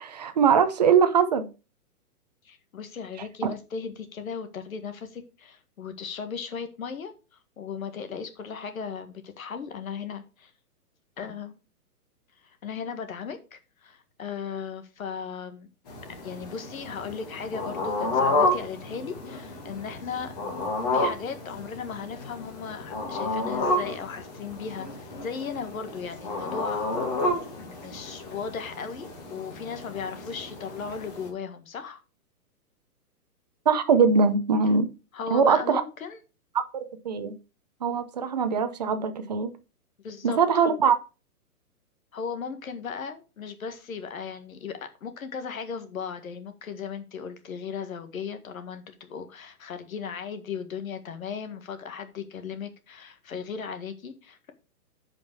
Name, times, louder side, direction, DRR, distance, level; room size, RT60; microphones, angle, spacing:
voice 1, 0.0-1.5 33.7-34.9 35.3-35.8 36.7-37.3 37.8-39.5 40.2-40.9, right 6 dB, 25° right, 0.7 m, -22 dB
voice 2, 2.4-7.1 7.6-10.5 11.2-11.6 12.4-15.7 16.2-20.4 20.9-26.8 27.6-32.0 35.1-36.2 40.0-40.6 42.1-54.5, left 6 dB, 60° left, 1.8 m, -37 dB
sound 1, 15.9-31.3, left 2 dB, 25° left, 2.1 m, -31 dB
9.5 x 5.4 x 4.7 m
hypercardioid pair, 175°, 46 cm